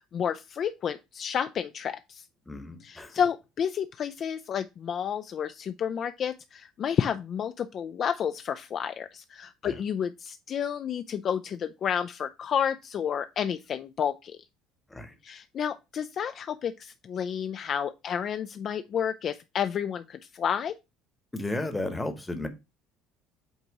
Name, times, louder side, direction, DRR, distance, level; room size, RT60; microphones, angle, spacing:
voice 1, 0.0-2.3 2.8-14.4 15.2-20.7, left 8 dB, 35° left, 0.3 m, -31 dB
voice 2, 2.5-3.1 9.6-9.7 14.9-15.1 21.3-22.5, left 2 dB, 10° left, 1.0 m, -33 dB
7.9 x 2.9 x 4.7 m
cardioid pair, 155°, 0 cm